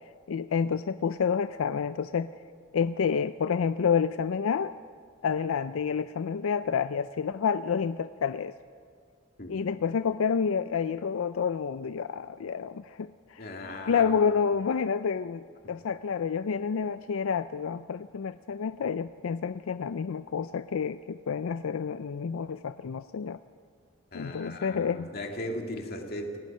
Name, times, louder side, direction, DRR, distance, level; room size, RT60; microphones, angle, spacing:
voice 1, 0.3-2.3 2.7-4.7 5.2-8.5 9.5-13.4 13.9-23.4 24.1-25.1, left 6 dB, 90° left, 12 dB, 0.4 m, -29 dB
voice 2, 13.4-14.2 24.1-26.4, left 1 dB, 50° left, 2 dB, 2.3 m, -37 dB
28.5 x 18.0 x 5.5 m, 2.1 s
head